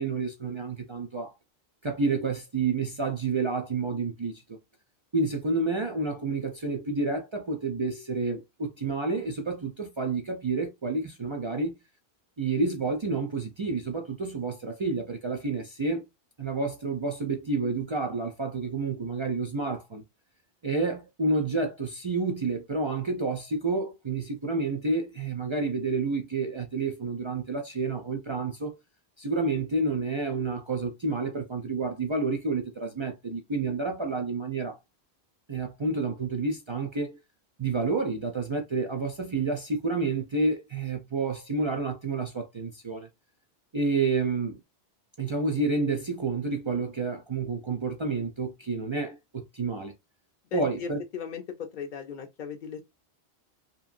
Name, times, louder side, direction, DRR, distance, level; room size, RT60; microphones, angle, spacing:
voice 1, 0.0-1.3 1.8-4.6 5.1-11.7 12.4-16.0 16.4-20.0 20.6-28.8 29.2-34.8 35.5-37.2 37.6-43.1 43.7-44.6 45.2-49.9 50.5-51.0, right 3 dB, 50° right, 0.3 m, -29 dB
voice 2, 50.5-52.8, left 6 dB, 55° left, 0.6 m, -37 dB
3.0 x 2.7 x 2.4 m
omnidirectional pair, 1.1 m